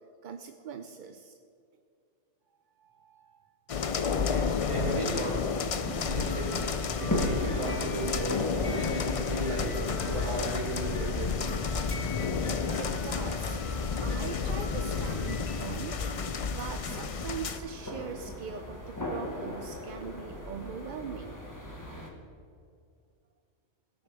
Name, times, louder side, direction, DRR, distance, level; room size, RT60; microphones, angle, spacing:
voice 1, 0.2-1.3 2.8-3.4 12.8-13.6 14.0-16.0 16.5-21.4, right 7 dB, 55° right, 6 dB, 0.6 m, -41 dB
sound 1, 3.7-17.6, left 5 dB, 60° left, 0.3 m, -31 dB
voice 2, 4.3-5.5 6.0-6.6 7.0-11.4, right 1 dB, 25° right, -5 dB, 3.2 m, -35 dB
sound 2, 5.8-22.1, left 1 dB, 15° left, 1.3 m, -39 dB
sound 3, 6.3-16.1, left 2 dB, 35° left, 1.8 m, -48 dB
17.0 x 6.3 x 4.8 m, 2.3 s
omnidirectional pair, 1.2 m